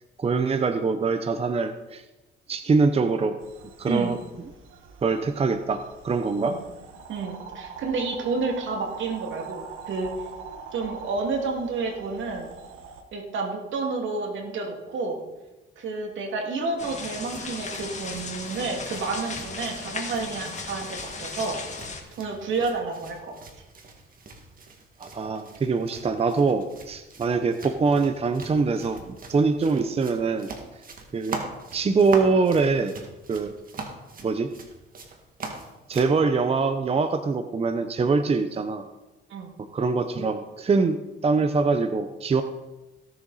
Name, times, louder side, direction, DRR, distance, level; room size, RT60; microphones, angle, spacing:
voice 1, 0.2-2.0 2.5-3.4 3.8-4.2 5.0-6.6 25.0-30.5 31.1-31.4 31.7-32.9 33.3-33.5 34.2-34.5 35.9-38.8 39.7-42.4, right 4 dB, 30° right, 9 dB, 0.7 m, -24 dB
sound 1, 3.4-13.0, right 6 dB, 90° right, 1.4 m, -43 dB
voice 2, 3.9-4.2 6.4-6.6 7.1-10.1 10.7-12.5 13.1-15.2 15.8-21.9 22.2-23.4 39.3-39.5, right 4 dB, 75° right, 2 dB, 2.4 m, -30 dB
sound 2, 16.8-22.0, left 4 dB, 35° left, 1.9 m, -36 dB
sound 3, 17.0-36.2, right 3 dB, 45° right, 2.0 m, -42 dB
17.0 x 7.3 x 4.1 m, 1.1 s
cardioid pair, 90°, 20 cm